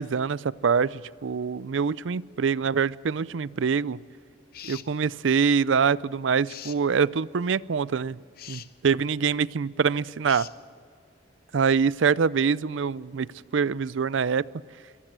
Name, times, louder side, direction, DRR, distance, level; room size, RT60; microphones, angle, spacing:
voice 1, 0.0-4.0 4.6-8.2 8.5-10.5 11.5-14.4, right 6 dB, 80° right, 20 dB, 0.5 m, -25 dB
sound 1, 4.5-4.9 6.5-6.8 8.4-8.7 10.3-10.6, left 11 dB, 50° left, 0.7 m, -42 dB
24.0 x 19.0 x 7.5 m, 2.2 s
head